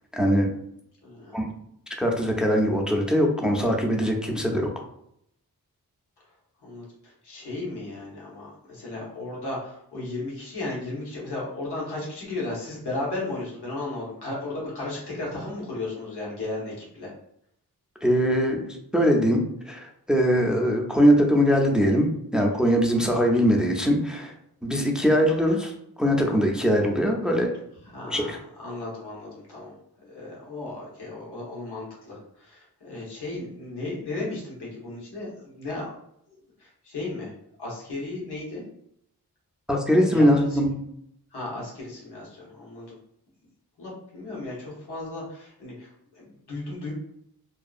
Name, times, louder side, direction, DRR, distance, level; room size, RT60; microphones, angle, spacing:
voice 1, 0.1-0.5 1.3-1.5 2.0-4.7 18.0-19.4 19.7-24.3 24.6-25.7 26.0-27.5 28.1-28.4 39.7-40.7, equal, ahead, 1 dB, 0.4 m, -21 dB
voice 2, 1.0-1.4 6.6-17.1 27.9-29.7 30.0-35.9 36.3-38.6 40.1-40.6 41.3-43.0 43.8-45.9 46.1-46.9, left 2 dB, 85° left, -5 dB, 1.0 m, -35 dB
2.7 x 2.3 x 2.4 m, 0.72 s
wide cardioid pair, 70°, 38 cm